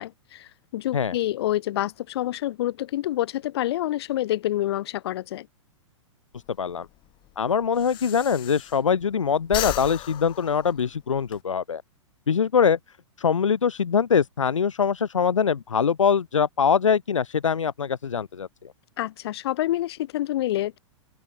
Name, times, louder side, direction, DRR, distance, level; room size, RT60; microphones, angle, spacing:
voice 1, 0.0-5.5 19.0-20.8, left 14 dB, 55° left, 2.4 m, -27 dB
Breathing, 6.3-9.1 9.4-11.4, left 17 dB, 30° left, 2.0 m, -35 dB
voice 2, 7.4-11.8 12.3-12.8 13.2-18.5, left 7 dB, 75° left, 1.2 m, -23 dB
open air
figure-of-eight pair, 105°, 16 cm